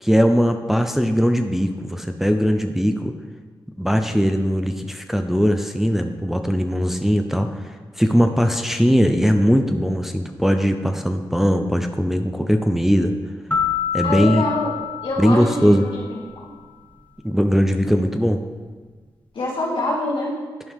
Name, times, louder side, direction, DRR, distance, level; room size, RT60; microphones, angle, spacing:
voice 1, 0.0-3.1 3.8-13.1 13.9-14.4 15.2-15.8 17.2-18.4, equal, 5° right, 5 dB, 0.6 m, -19 dB
sound 1, 13.5-16.3, left 8 dB, 15° left, 0.9 m, -27 dB
voice 2, 14.0-14.7 15.0-16.5 19.3-20.4, left 2 dB, 75° left, -4 dB, 2.2 m, -25 dB
11.5 x 4.6 x 3.6 m, 1.4 s
cardioid pair, 60°, 9 cm